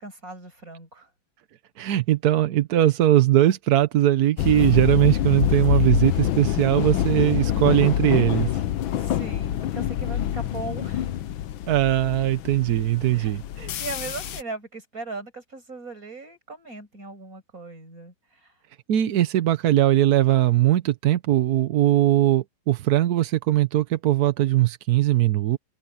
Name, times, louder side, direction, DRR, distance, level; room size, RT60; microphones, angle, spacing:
voice 1, 0.0-1.1 9.0-11.2 13.1-18.5, right 3 dB, 45° right, 6.9 m, -38 dB
voice 2, 1.8-8.6 11.7-13.4 13.7-13.8 18.9-25.6, right 13 dB, 60° right, 1.1 m, -20 dB
sound 1, 4.4-14.4, left 11 dB, 90° left, 1.6 m, -26 dB
open air
omnidirectional pair, 2.1 m